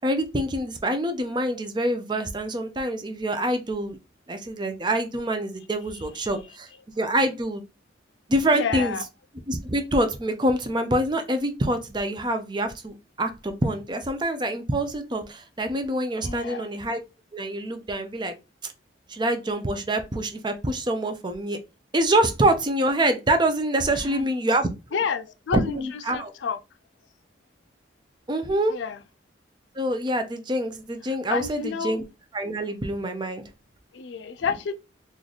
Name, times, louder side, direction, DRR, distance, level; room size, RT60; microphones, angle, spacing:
voice 1, 0.0-4.0 4.3-6.7 7.0-7.6 8.3-9.0 9.5-17.0 17.3-18.3 19.1-21.6 21.9-25.0 25.5-26.3 28.3-28.8 29.7-32.0 32.3-33.4, right 1 dB, 25° right, 0.5 m, -26 dB
voice 2, 8.5-9.0 16.2-16.7 24.0-24.3 24.9-26.6 28.7-29.0 31.3-32.0 33.9-34.7, left 6 dB, 75° left, 0.4 m, -30 dB
3.1 x 2.5 x 3.9 m
head